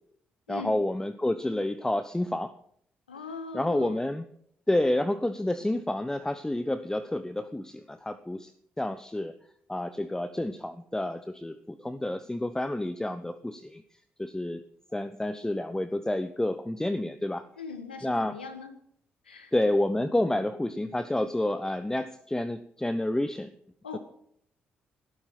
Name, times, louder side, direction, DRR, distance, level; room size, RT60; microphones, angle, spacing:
voice 1, 0.5-2.5 3.5-4.2 4.7-8.5 8.8-9.3 9.7-13.8 14.2-14.6 14.9-17.4 18.0-18.4 19.5-23.5 23.9-24.0, left 1 dB, 10° left, 12 dB, 1.1 m, -29 dB
voice 2, 3.1-4.1 17.6-18.7 19.2-19.5 23.8-24.0, left 5 dB, 90° left, 9 dB, 1.5 m, -40 dB
19.0 x 12.0 x 6.0 m, 0.66 s
figure-of-eight pair, 40°, 5 cm